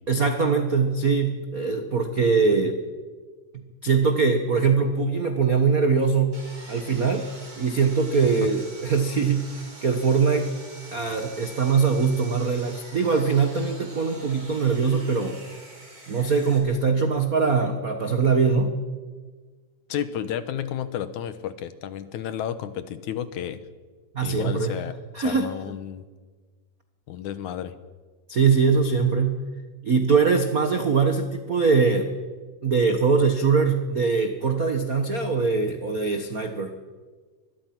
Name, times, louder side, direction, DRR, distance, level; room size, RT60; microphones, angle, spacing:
voice 1, 0.1-2.8 3.8-6.4 6.7-7.3 7.6-9.5 9.8-10.5 10.9-15.4 16.1-18.7 24.1-24.7 25.1-25.5 28.3-29.4 29.8-32.1 32.6-36.7, right 5 dB, 70° right, 6 dB, 0.8 m, -22 dB
Sawing, 6.3-16.6, right 2 dB, 25° right, 4.9 m, -45 dB
voice 2, 19.9-23.6 24.2-25.0 25.2-26.0 27.1-27.8, left 10 dB, 70° left, 12 dB, 2.3 m, -32 dB
24.5 x 21.0 x 5.9 m, 1.4 s
omnidirectional pair, 3.7 m